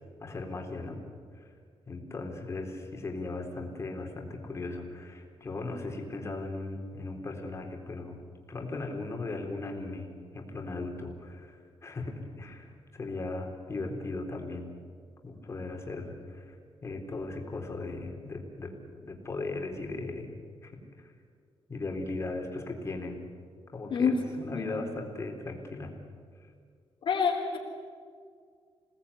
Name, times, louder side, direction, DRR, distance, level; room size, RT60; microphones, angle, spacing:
voice 1, 0.2-1.0 1.9-8.2 8.5-14.7 15.2-16.5 16.8-18.7 19.0-20.3 20.6-20.7 21.7-23.2 23.7-25.9, left 2 dB, 30° left, 2 dB, 4.0 m, -37 dB
voice 2, 24.5-24.8 27.1-27.6, left 6 dB, 55° left, -4 dB, 3.6 m, -27 dB
28.0 x 19.0 x 9.8 m, 2.1 s
wide cardioid pair, 170°, 10 cm